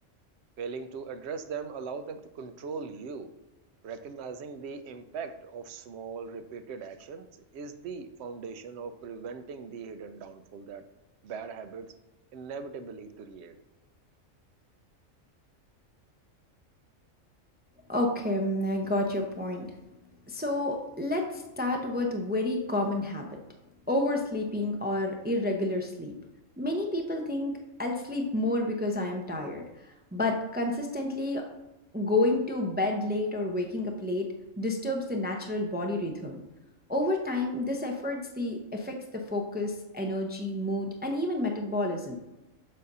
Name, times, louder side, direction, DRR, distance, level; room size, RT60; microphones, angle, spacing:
voice 1, 0.6-3.3 3.8-10.8 11.2-11.9 12.3-13.6, right 5 dB, 65° right, 8 dB, 0.8 m, -40 dB
voice 2, 17.9-19.7 20.3-23.3 23.9-26.1 26.6-31.5 31.9-36.4 36.9-42.2, left 1 dB, 10° right, 2 dB, 0.4 m, -30 dB
7.4 x 2.6 x 5.4 m, 1.0 s
omnidirectional pair, 1.4 m